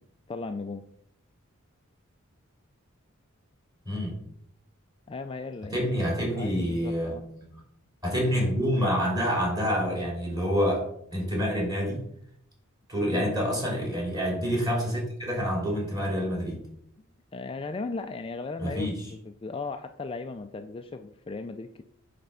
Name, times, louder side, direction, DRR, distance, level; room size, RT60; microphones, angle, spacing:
voice 1, 0.3-0.8 5.1-5.9 6.3-7.2 13.1-13.4 17.3-18.9 19.2-21.8, left 3 dB, 25° left, 6 dB, 0.3 m, -36 dB
voice 2, 3.8-4.2 5.7-7.6 8.0-10.8 11.1-12.0 12.9-16.6 18.6-19.1, equal, 20° right, -2 dB, 3.0 m, -27 dB
9.0 x 3.4 x 5.6 m, 0.71 s
head